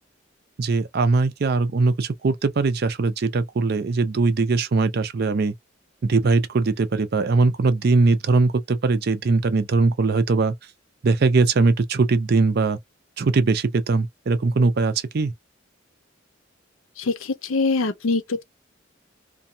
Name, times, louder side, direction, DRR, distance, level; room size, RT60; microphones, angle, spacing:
voice 1, 0.6-5.5 6.0-10.5 11.0-12.8 13.2-15.3, right 3 dB, 55° right, 0.5 m, -21 dB
voice 2, 17.0-18.4, left 3 dB, 90° left, 0.6 m, -24 dB
2.6 x 2.2 x 2.6 m
head